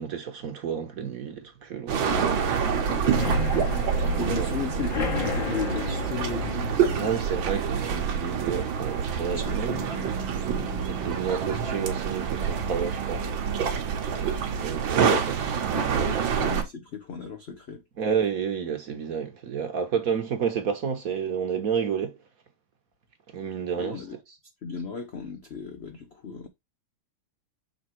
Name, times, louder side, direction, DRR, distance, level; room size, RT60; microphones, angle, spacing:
voice 1, 0.0-2.7 4.3-4.6 7.0-9.8 10.9-13.3 13.9-15.3 15.6-16.3 18.0-22.2 23.3-24.0, right 7 dB, 50° right, 1.3 m, -30 dB
sound 1, 1.9-16.6, right 7 dB, 75° right, 1.8 m, -27 dB
voice 2, 2.0-3.4 4.2-7.2 9.1-11.1 15.0-15.2 15.6-17.8 23.8-24.1 24.6-26.5, left 5 dB, 80° left, 0.5 m, -36 dB
sound 2, 3.0-10.6 11.0-11.4 11.7-11.8 12.1-12.2, left 6 dB, 50° left, 1.2 m, -35 dB
6.6 x 3.4 x 4.5 m
omnidirectional pair, 2.2 m